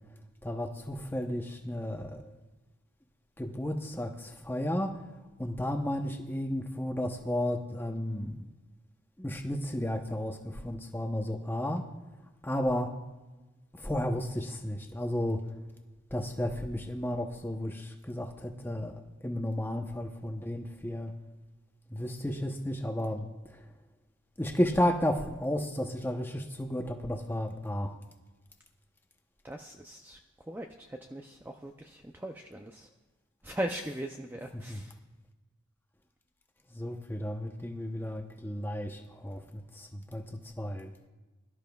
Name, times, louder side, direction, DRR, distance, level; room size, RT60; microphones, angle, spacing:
voice 1, 0.4-2.3 3.4-4.9 5.4-8.5 9.2-11.8 12.4-12.9 13.8-15.4 16.1-21.1 21.9-23.3 24.4-27.9 34.7-34.8 36.7-40.2 40.6-40.9, left 1 dB, 10° left, 4 dB, 0.8 m, -33 dB
voice 2, 29.4-32.9 33.4-34.9, right 1 dB, 10° right, 3 dB, 0.4 m, -39 dB
22.5 x 12.5 x 2.3 m, 1.2 s
head